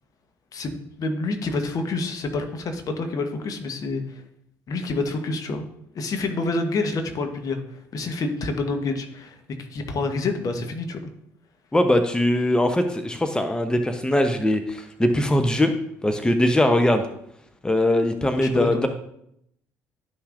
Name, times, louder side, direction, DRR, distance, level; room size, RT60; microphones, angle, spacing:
voice 1, 0.5-4.2 4.7-5.6 5.9-9.4 9.7-11.0 18.4-18.9, left 3 dB, 50° left, 6 dB, 1.1 m, -28 dB
voice 2, 11.7-15.7 16.0-17.0 17.6-18.9, left 1 dB, 10° left, 7 dB, 0.8 m, -21 dB
11.5 x 5.6 x 2.5 m, 0.74 s
hypercardioid pair, 55°, 8 cm